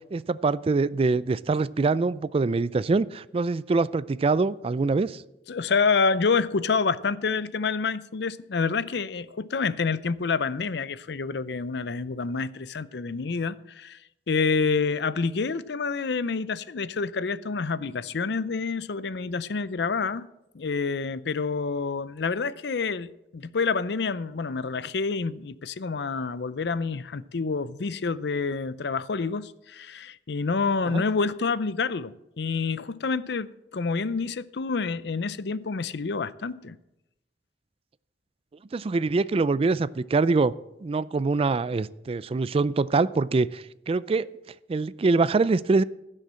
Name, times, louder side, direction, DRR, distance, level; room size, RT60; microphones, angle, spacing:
voice 1, 0.1-5.2 30.8-31.0 38.7-40.5 40.8-44.3 44.7-45.8, right 3 dB, 35° right, 0.4 m, -24 dB
voice 2, 5.5-14.0 14.3-20.3 20.5-36.8, left 4 dB, 70° left, 0.6 m, -28 dB
15.5 x 6.5 x 7.5 m
head